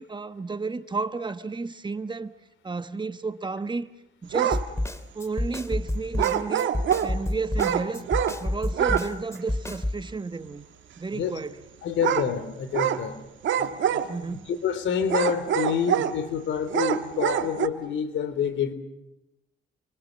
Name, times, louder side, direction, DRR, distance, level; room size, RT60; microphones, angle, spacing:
voice 1, 0.0-2.3 2.6-3.9 4.2-4.6 5.1-6.7 7.0-8.1 8.4-10.6 11.0-11.6 14.1-14.5, right 4 dB, 25° right, 1.3 m, -32 dB
sound 1, 4.3-4.6 6.2-7.1 7.6-8.4 8.7-9.1 9.3-9.4 12.0-12.3 12.7-13.0 13.4-14.3 15.0-16.2 16.7-17.7, right 9 dB, 75° right, 1.8 m, -25 dB
Snare drum, 4.5-10.0, left 1 dB, 15° left, 2.5 m, -29 dB
voice 2, 11.8-13.2 13.6-14.0 14.5-18.7, left 7 dB, 75° left, 3.9 m, -28 dB
29.5 x 23.5 x 7.7 m
cardioid pair, 90°, 20 cm